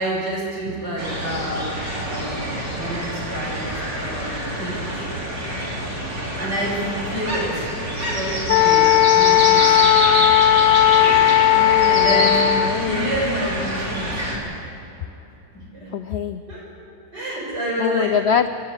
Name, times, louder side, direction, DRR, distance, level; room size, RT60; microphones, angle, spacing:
voice 1, 0.0-4.9 6.4-7.7 7.9-9.7 10.1-10.5 10.9-11.3 11.9-14.2 15.7-15.9 16.5-16.7 17.1-18.2, equal, 65° right, -3 dB, 7.3 m, -28 dB
sound 1, 1.0-14.4, right 1 dB, 50° right, 4.2 m, -26 dB
Wind instrument woodwind instrument, 8.5-12.8, left 12 dB, 65° left, 0.9 m, -16 dB
voice 2, 11.5-13.2 15.9-16.4 17.8-18.5, left 7 dB, 85° left, 9 dB, 0.5 m, -24 dB
27.5 x 12.0 x 9.8 m, 3.0 s
omnidirectional pair, 1.9 m